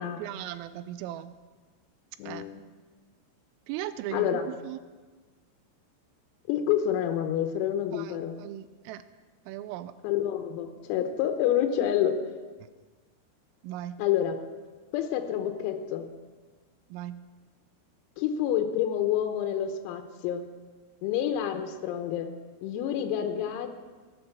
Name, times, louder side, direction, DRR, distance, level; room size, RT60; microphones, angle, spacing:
voice 1, 0.2-1.4 2.2-2.4 3.7-4.8 7.9-9.0 9.5-10.0 13.6-14.0 16.9-17.2, right 13 dB, 85° right, 13 dB, 3.1 m, -38 dB
voice 2, 2.2-2.6 4.1-4.5 6.5-8.4 10.0-12.2 14.0-14.4 14.9-16.1 18.2-20.5 21.0-22.3 22.6-23.7, left 10 dB, 90° left, 6 dB, 3.7 m, -28 dB
17.0 x 8.8 x 6.8 m, 1.4 s
omnidirectional pair, 6.0 m